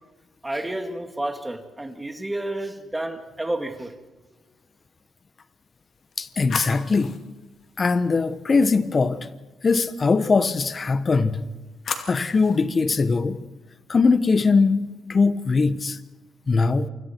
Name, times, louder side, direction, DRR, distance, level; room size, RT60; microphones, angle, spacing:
voice 1, 0.4-3.9, right 1 dB, 10° right, 2.4 m, -30 dB
sound 1, 5.7-8.7 11.1-12.7, left 5 dB, 50° left, 2.2 m, -37 dB
voice 2, 6.2-7.2 7.8-9.3 9.6-11.4 12.1-13.4 13.9-16.0 16.5-16.9, left 4 dB, 35° left, 1.1 m, -21 dB
28.5 x 25.5 x 4.6 m
cardioid pair, 90°, 0 cm